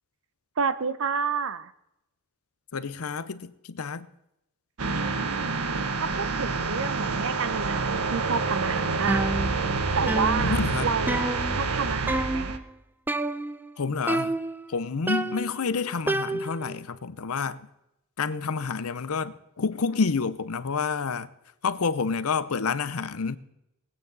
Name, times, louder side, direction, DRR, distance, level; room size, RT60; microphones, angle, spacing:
voice 1, 0.6-1.7 5.0-5.6 6.0-9.2 9.9-12.6, right 5 dB, 65° right, 0.7 m, -30 dB
voice 2, 2.7-4.1 10.4-10.9 13.8-14.4 14.7-17.6 18.2-21.3 21.6-23.4, left 5 dB, 80° left, 0.7 m, -29 dB
sound 1, 4.8-12.6, right 4 dB, 85° right, 1.0 m, -28 dB
sound 2, 9.1-9.8 10.1-11.8 12.1-12.6 13.1-13.7 14.1-14.7 15.1-16.8, right 1 dB, 10° right, 0.3 m, -29 dB
20.5 x 8.7 x 4.0 m
head